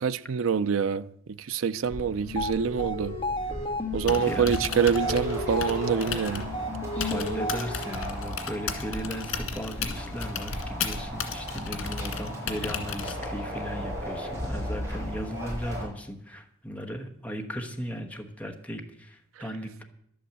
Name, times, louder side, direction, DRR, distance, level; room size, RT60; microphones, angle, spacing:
voice 1, 0.0-3.2 3.9-6.5, right 6 dB, 80° right, 0.5 m, -26 dB
sound 1, 1.9-15.8, equal, 15° right, 6.3 m, -36 dB
sound 2, 2.2-8.0, left 1 dB, 25° left, 1.8 m, -33 dB
Typing, 3.9-13.5, left 5 dB, 90° left, 2.0 m, -36 dB
voice 2, 4.2-4.6 6.9-19.8, equal, 10° left, 1.1 m, -37 dB
11.5 x 8.8 x 8.0 m
head